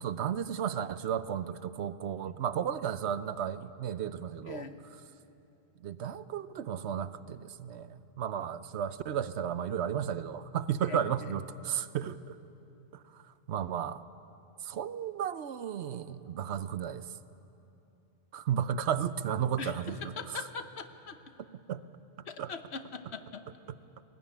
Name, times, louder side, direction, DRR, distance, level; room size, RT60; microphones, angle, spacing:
voice 1, 0.0-4.7 5.8-12.4 13.1-13.2 13.5-14.0 14.6-17.0 18.3-20.4 21.7-21.8 22.4-22.5, right 8 dB, 85° right, 14 dB, 1.0 m, -33 dB
voice 2, 4.5-4.8 10.9-11.3 19.6-21.2 22.3-23.4, left 4 dB, 75° left, 9 dB, 1.4 m, -41 dB
20.0 x 15.5 x 10.0 m, 2.8 s
omnidirectional pair, 1.1 m